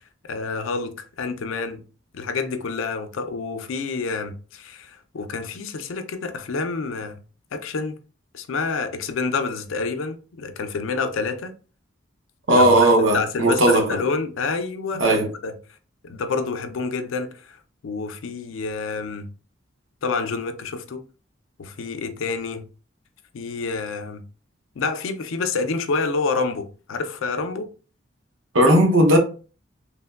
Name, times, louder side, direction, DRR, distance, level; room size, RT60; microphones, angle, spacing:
voice 1, 0.2-1.8 2.1-7.2 7.5-7.9 8.3-11.5 12.5-15.5 16.1-17.6 17.8-19.3 20.0-21.0 21.6-22.6 23.3-24.2 24.8-27.7, left 4 dB, 85° left, 0.4 m, -28 dB
voice 2, 12.5-14.0 15.0-15.3 28.5-29.2, right 1 dB, 80° right, 0.7 m, -16 dB
3.2 x 2.1 x 2.2 m
head